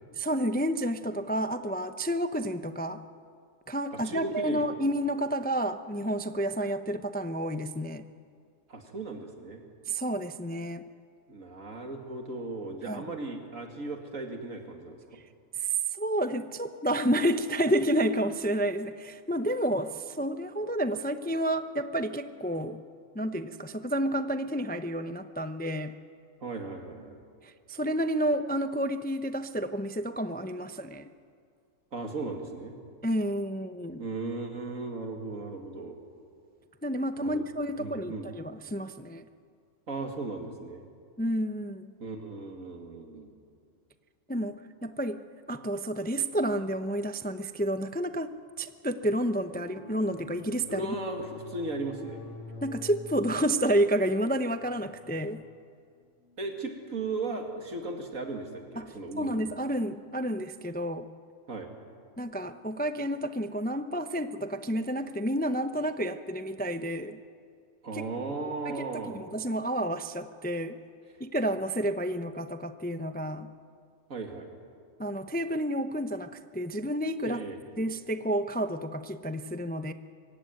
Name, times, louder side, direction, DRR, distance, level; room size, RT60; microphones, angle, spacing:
voice 1, 0.1-3.0 3.7-8.1 9.9-10.8 12.9-13.0 15.1-15.2 15.6-22.8 23.1-26.0 27.4-31.1 33.0-34.0 36.8-39.3 41.2-41.9 44.3-50.9 52.6-55.4 58.8-61.1 62.2-67.2 67.9-68.0 68.6-70.8 71.2-73.5 75.0-77.4 77.8-79.9, right 1 dB, 10° left, 10 dB, 0.4 m, -30 dB
voice 2, 3.9-4.7 8.7-9.6 11.3-15.0 26.4-27.2 31.9-32.8 34.0-36.0 37.2-37.4 37.8-38.3 39.9-40.8 42.0-43.4 44.4-44.5 50.7-52.2 56.4-59.5 61.5-61.7 67.8-69.2 74.1-74.5 77.2-77.6, right 3 dB, 80° right, 4 dB, 2.7 m, -36 dB
sound 1, 49.5-57.6, left 2 dB, 65° left, 1.9 m, -48 dB
24.0 x 16.0 x 9.4 m, 2.2 s
omnidirectional pair, 1.4 m